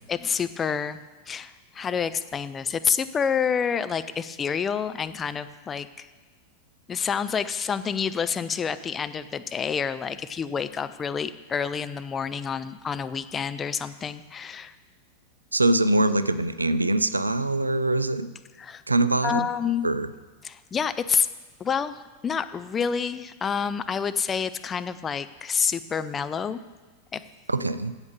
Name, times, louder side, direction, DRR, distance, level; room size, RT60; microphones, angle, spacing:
voice 1, 0.1-1.0 1.3-6.1 6.9-14.7 18.6-18.8 19.2-19.9 20.4-21.3 21.6-26.6 27.1-27.2, left 6 dB, 20° left, 11 dB, 0.5 m, -28 dB
voice 2, 15.5-18.3 18.9-19.5 19.8-20.1 27.5-27.9, right 2 dB, 80° right, 13 dB, 0.4 m, -23 dB
8.5 x 8.1 x 6.8 m, 1.3 s
figure-of-eight pair, 90°, 0 cm